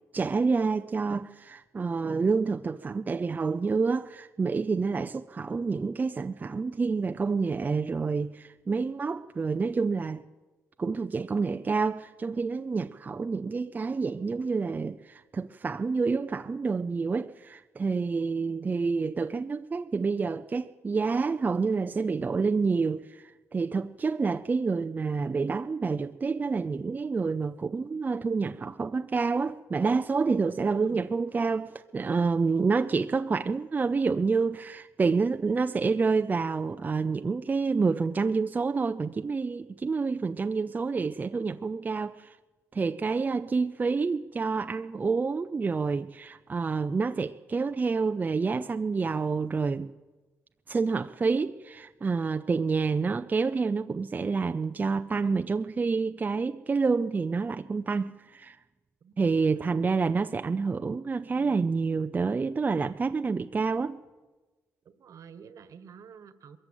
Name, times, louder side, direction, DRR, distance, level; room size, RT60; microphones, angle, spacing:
voice 1, 0.1-10.2 10.8-42.4 42.7-49.9 50.7-58.6 59.2-64.0, right 4 dB, 30° right, 0.6 m, -28 dB
voice 2, 30.7-31.1 59.0-59.8 61.2-61.6 64.8-66.6, right 7 dB, 60° right, 1.6 m, -47 dB
21.5 x 14.0 x 9.1 m
cardioid pair, 95°, 6 cm